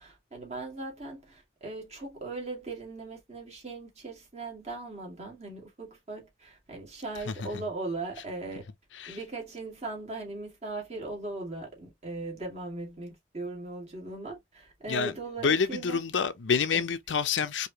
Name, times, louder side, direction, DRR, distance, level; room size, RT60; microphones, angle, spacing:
voice 1, 0.0-8.7 9.1-16.0 16.7-16.9, right 2 dB, 35° right, 1.9 m, -39 dB
voice 2, 15.4-17.7, left 6 dB, 85° left, 0.6 m, -27 dB
4.8 x 2.8 x 2.9 m
head